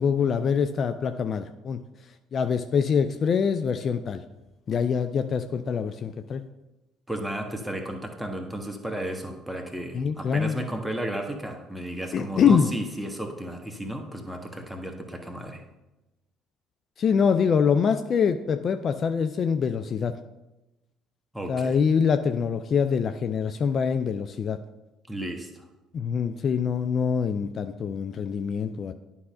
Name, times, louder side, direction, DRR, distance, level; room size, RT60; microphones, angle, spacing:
voice 1, 0.0-1.8 2.3-4.2 4.7-6.4 9.9-10.6 12.1-12.7 17.0-20.1 21.5-24.6 25.9-28.9, left 6 dB, 40° left, 9 dB, 0.4 m, -24 dB
voice 2, 7.1-15.6 21.3-21.8 25.1-25.6, right 1 dB, 5° right, 3 dB, 1.3 m, -33 dB
11.5 x 5.4 x 2.5 m, 1.0 s
figure-of-eight pair, 50°, 0 cm